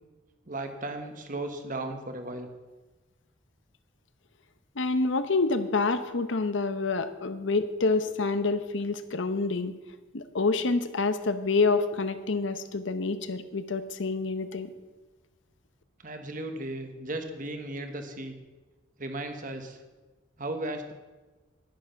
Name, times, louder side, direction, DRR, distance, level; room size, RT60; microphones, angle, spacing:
voice 1, 0.5-2.5 16.0-18.3 19.0-19.8 20.4-20.9, right 2 dB, 45° right, 6 dB, 1.2 m, -35 dB
voice 2, 4.8-9.8 10.1-14.7, left 3 dB, 70° left, 11 dB, 0.8 m, -27 dB
10.5 x 10.0 x 5.7 m, 1.2 s
head